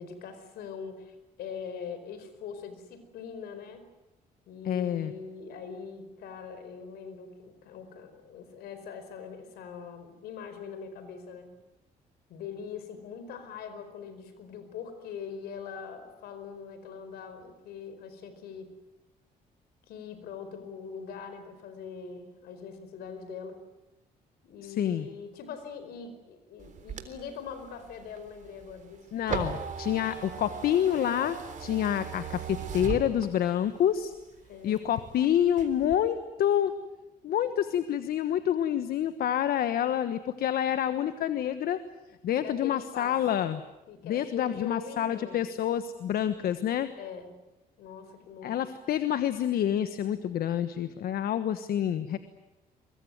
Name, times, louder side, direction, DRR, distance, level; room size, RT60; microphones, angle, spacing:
voice 1, 0.0-3.9 4.5-11.6 12.3-18.7 19.9-23.6 24.4-29.1 34.5-34.8 42.4-43.2 43.9-45.4 47.0-47.3 47.8-48.6, left 6 dB, 85° left, 10 dB, 4.8 m, -42 dB
voice 2, 4.6-5.1 24.6-25.1 29.1-34.1 34.6-36.7 37.2-41.8 42.2-43.6 44.0-46.9 48.4-52.2, left 10 dB, 70° left, 11 dB, 1.3 m, -28 dB
sound 1, 26.6-33.7 34.1-35.1 35.5-35.9, right 6 dB, 55° right, 3.6 m, -38 dB
24.0 x 22.5 x 9.5 m, 0.96 s
cardioid pair, 100°, 16 cm